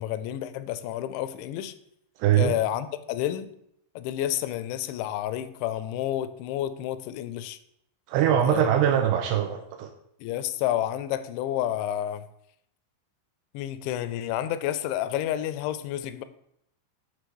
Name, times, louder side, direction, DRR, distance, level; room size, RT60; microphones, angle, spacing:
voice 1, 0.0-1.7 2.3-3.5 4.0-7.6 8.4-8.7 10.2-12.2 13.5-16.2, left 12 dB, 85° left, 2.7 m, -30 dB
voice 2, 2.2-2.5 8.1-9.9, right 10 dB, 90° right, 2.4 m, -22 dB
9.7 x 3.3 x 6.2 m
omnidirectional pair, 5.4 m